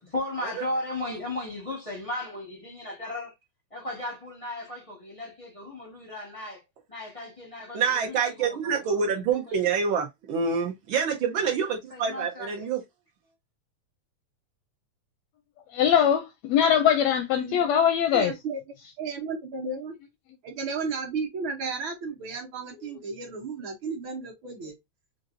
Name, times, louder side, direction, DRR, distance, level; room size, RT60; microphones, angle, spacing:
voice 1, 0.0-3.3 3.7-6.6 6.9-9.2 9.5-9.6 11.4-11.5 11.9-12.7, left 2 dB, 40° left, 0.4 m, -36 dB
voice 2, 7.7-12.8, right 6 dB, 85° right, 1.1 m, -26 dB
voice 3, 15.7-18.3, left 9 dB, 80° left, 1.5 m, -22 dB
voice 4, 17.3-17.7 18.1-18.6 19.0-19.9 20.4-24.7, right 4 dB, 60° right, 1.4 m, -33 dB
5.3 x 2.6 x 2.6 m
omnidirectional pair, 3.3 m